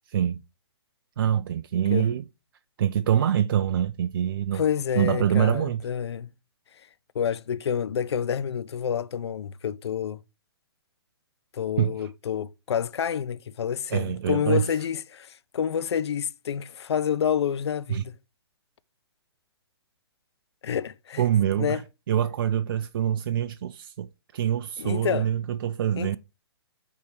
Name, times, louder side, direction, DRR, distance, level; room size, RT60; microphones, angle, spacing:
voice 1, 0.1-0.4 1.2-2.2 2.8-4.6 5.0-5.8 11.8-12.1 13.9-14.7 17.9-18.0 21.2-21.8 22.1-26.2, right 10 dB, 55° right, 0.4 m, -25 dB
voice 2, 4.5-6.3 6.7-6.9 7.1-10.2 11.5-18.2 20.6-21.2 21.6-21.8 24.8-25.3 26.0-26.2, left 8 dB, 80° left, 0.4 m, -28 dB
8.4 x 3.6 x 3.1 m
hypercardioid pair, 135°, 14 cm